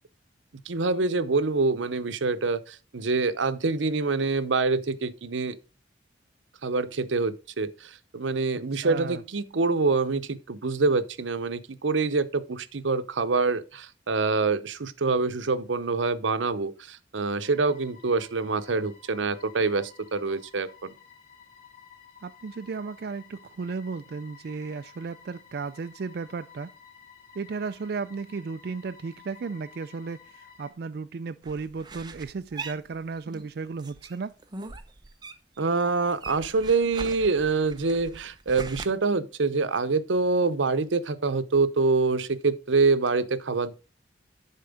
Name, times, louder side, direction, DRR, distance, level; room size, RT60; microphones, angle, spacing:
voice 1, 0.7-5.6 6.6-20.9 35.6-43.8, right 3 dB, 90° right, 0.7 m, -26 dB
voice 2, 8.7-9.2 22.2-26.7 27.4-34.3, right 4 dB, 55° right, 0.4 m, -34 dB
sound 1, 17.4-30.7, left 7 dB, 50° left, 2.2 m, -53 dB
sound 2, 31.4-33.5 33.8-35.6 35.9-38.9, right 3 dB, 25° right, 0.8 m, -41 dB
10.5 x 4.4 x 5.1 m
head